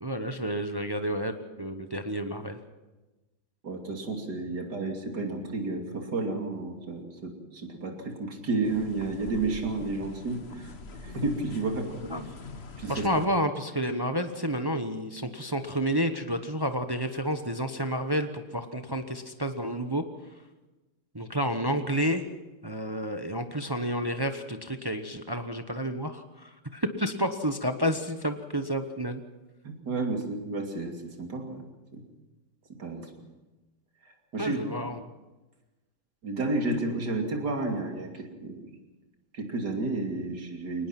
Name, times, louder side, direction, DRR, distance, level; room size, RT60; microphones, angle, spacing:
voice 1, 0.0-2.6 12.0-12.3 12.9-20.0 21.1-22.2 22.6-29.2 34.4-35.0, equal, 25° right, 7 dB, 0.5 m, -30 dB
voice 2, 3.6-10.7 11.0-11.9 12.8-13.1 29.6-31.6 31.9-32.0 32.8-33.1 34.0-34.6 36.2-38.6 39.3-40.9, right 3 dB, 55° right, 2 dB, 3.3 m, -31 dB
sound 1, 8.6-13.2, left 3 dB, 35° left, 1.3 m, -43 dB
23.0 x 20.0 x 6.0 m, 1.1 s
omnidirectional pair, 2.2 m